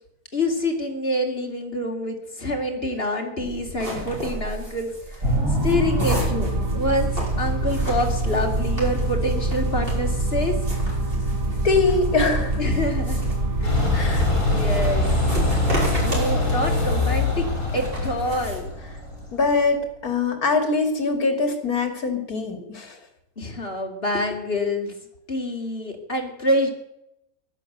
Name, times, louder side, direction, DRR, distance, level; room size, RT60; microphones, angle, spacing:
voice 1, 0.3-5.3 5.6-10.5 12.6-13.2 13.6-15.0 15.7-17.4 17.7-18.7 23.4-24.9 25.3-26.7, left 1 dB, 40° left, 3 dB, 3.1 m, -26 dB
sound 1, 3.4-18.6, right 1 dB, 35° right, 6.1 m, -34 dB
sound 2, 5.2-19.7, right 1 dB, 60° right, 4.1 m, -26 dB
voice 2, 11.6-12.6 13.9-14.3 19.3-23.0, left 3 dB, 70° left, 6 dB, 3.1 m, -23 dB
sound 3, 13.6-19.4, left 3 dB, 55° left, 5.0 m, -24 dB
15.0 x 12.0 x 8.0 m, 0.83 s
omnidirectional pair, 1.6 m